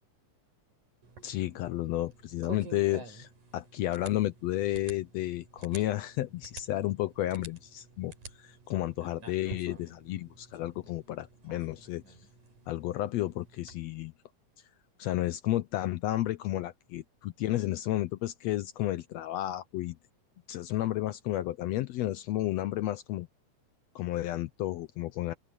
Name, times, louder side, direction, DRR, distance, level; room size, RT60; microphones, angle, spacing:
sound 1, 1.0-13.8, right 4 dB, 65° right, 6.3 m, -50 dB
voice 1, 1.2-8.1 8.4-12.0 12.7-14.1 15.0-20.0 20.5-23.3 23.9-25.3, left 15 dB, 85° left, 1.5 m, -32 dB
open air
omnidirectional pair, 3.7 m